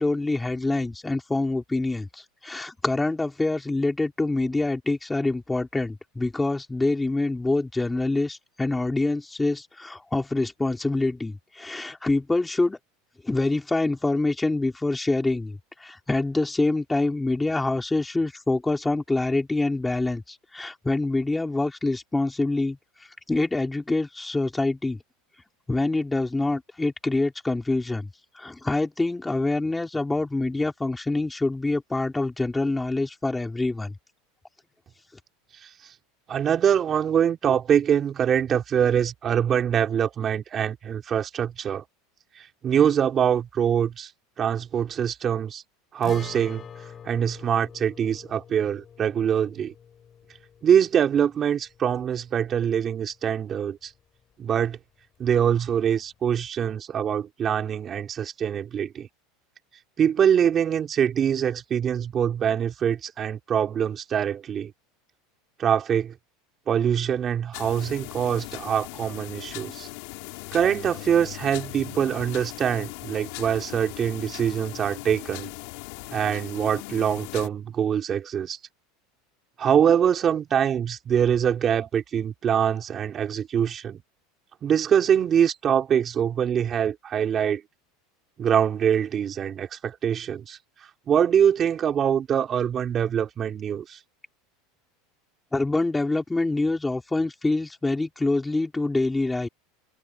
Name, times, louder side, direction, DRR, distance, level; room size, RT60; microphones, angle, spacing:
voice 1, 0.0-12.8 13.2-22.8 23.3-25.0 25.7-28.1 28.4-33.9 95.5-99.5, left 2 dB, 10° left, 4.4 m, -26 dB
voice 2, 36.3-41.8 42.4-44.1 44.4-45.6 45.9-46.7 47.1-49.7 50.6-53.9 54.4-54.8 55.2-59.1 60.0-64.7 65.6-66.1 66.7-69.9 70.5-75.5 76.1-78.6 79.6-84.0 84.6-87.6 88.4-90.6 91.1-94.0, right 8 dB, 30° right, 4.3 m, -24 dB
Guitar, 46.0-53.6 53.9-54.0 56.0-56.2, left 8 dB, 25° left, 7.3 m, -45 dB
sound 1, 67.5-77.5, left 25 dB, 65° left, 4.2 m, -39 dB
supercardioid pair, 145°, 0 cm